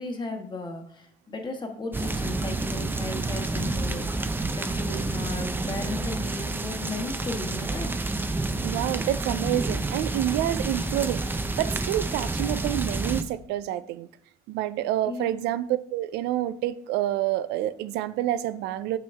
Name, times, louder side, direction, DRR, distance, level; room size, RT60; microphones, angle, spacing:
voice 1, 0.0-8.0 15.0-15.3, left 2 dB, 25° left, 1.2 m, -36 dB
sound 1, 1.9-13.2, right 2 dB, 10° right, 0.5 m, -29 dB
voice 2, 8.6-14.1 14.5-19.0, right 13 dB, 90° right, 0.4 m, -28 dB
6.3 x 5.9 x 3.4 m
cardioid pair, 110°, 17 cm